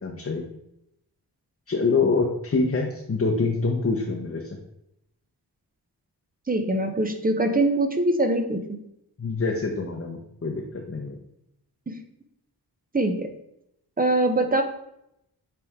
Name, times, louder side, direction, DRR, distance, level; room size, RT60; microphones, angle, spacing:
voice 1, 0.0-0.4 1.7-4.4 9.2-11.2, left 4 dB, 35° left, 0 dB, 0.8 m, -25 dB
voice 2, 6.5-8.8 11.9-12.0 12.9-13.3 14.0-14.6, right 2 dB, 20° right, 7 dB, 0.7 m, -23 dB
8.5 x 3.4 x 3.6 m, 0.80 s
wide cardioid pair, 100°, 39 cm